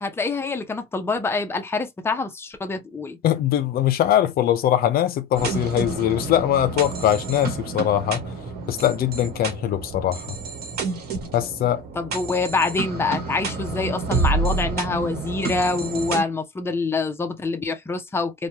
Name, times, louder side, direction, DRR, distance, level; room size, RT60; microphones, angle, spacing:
voice 1, 0.0-3.2 12.0-18.5, left 3 dB, 15° left, 0.6 m, -26 dB
voice 2, 3.2-8.3 8.7-10.4 11.3-11.8, left 11 dB, 65° left, 0.5 m, -22 dB
sound 1, 5.4-16.2, right 4 dB, 70° right, 1.2 m, -29 dB
3.1 x 2.2 x 2.8 m
cardioid pair, 110°, 17 cm